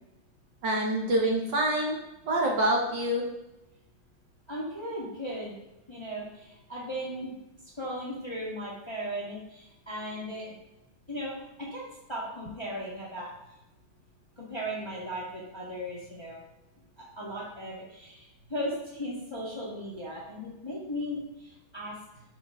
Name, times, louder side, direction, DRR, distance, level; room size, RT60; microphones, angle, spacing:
voice 1, 0.6-2.0 2.3-3.2, right 1 dB, 60° right, 0 dB, 1.5 m, -26 dB
voice 2, 4.5-5.6 5.9-7.3 7.8-10.5 11.1-11.3 11.6-13.3 14.4-16.4 17.0-22.2, equal, 15° left, -5 dB, 1.2 m, -37 dB
6.5 x 5.2 x 3.6 m, 0.95 s
omnidirectional pair, 2.3 m